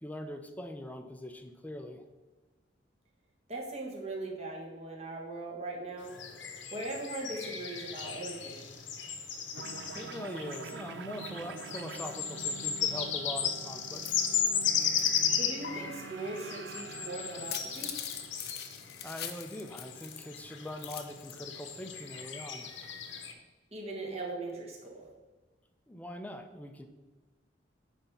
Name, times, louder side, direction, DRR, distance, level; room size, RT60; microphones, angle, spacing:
voice 1, 0.0-2.0 9.9-14.3 19.0-22.7 25.9-26.9, left 1 dB, 10° left, 6 dB, 0.6 m, -42 dB
voice 2, 3.5-6.1 6.7-8.7 15.3-17.9 23.7-25.1, right 2 dB, 35° right, -1 dB, 1.5 m, -39 dB
sound 1, 6.0-23.3, left 7 dB, 90° left, 1.0 m, -35 dB
sound 2, 9.5-18.5, right 4 dB, 70° right, 0.4 m, -46 dB
sound 3, 13.9-15.3 15.6-15.7 17.3-20.4 20.7-21.4, left 9 dB, 55° left, 0.7 m, -42 dB
9.3 x 3.5 x 5.7 m, 1.2 s
head